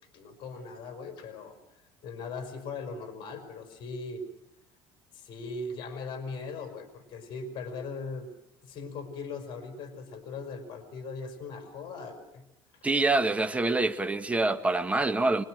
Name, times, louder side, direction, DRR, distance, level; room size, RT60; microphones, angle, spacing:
voice 1, 0.1-1.6 2.0-4.2 5.1-8.3 8.6-12.4, left 4 dB, 55° left, 5.1 m, -39 dB
voice 2, 12.8-15.4, right 2 dB, 15° right, 1.5 m, -26 dB
25.0 x 22.0 x 6.3 m
cardioid pair, 110°, 10 cm